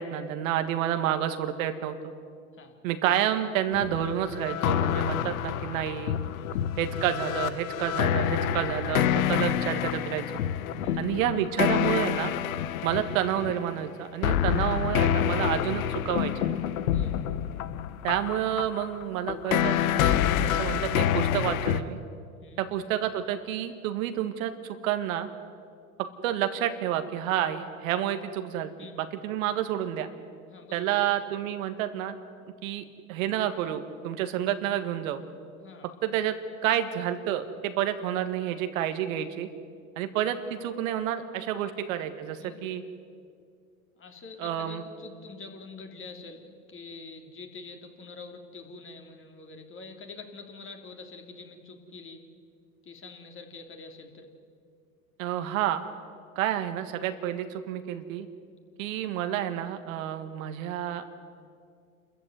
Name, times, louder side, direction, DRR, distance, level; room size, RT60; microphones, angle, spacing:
voice 1, 0.0-2.0 2.8-6.2 6.8-10.2 11.0-12.3 12.8-16.5 18.0-22.0 22.6-25.3 26.0-28.7 29.2-30.1 30.7-32.2 32.6-35.2 36.0-36.4 36.6-39.5 40.0-42.8 44.4-44.8 55.2-55.8 56.4-58.3 58.8-61.1, right 11 dB, 70° right, 8 dB, 1.8 m, -29 dB
sound 1, 3.7-13.5 14.2-21.8, left 10 dB, 75° left, 1.1 m, -27 dB
voice 2, 6.3-6.6 10.7-11.1 16.9-17.2 22.4-22.7 28.8-29.2 30.5-31.2 35.6-35.9 41.6-41.7 42.4-42.6 44.0-52.2 52.8-54.3, left 4 dB, 30° left, 4 dB, 3.1 m, -46 dB
27.5 x 14.5 x 9.5 m, 2.3 s
hypercardioid pair, 100°, 42 cm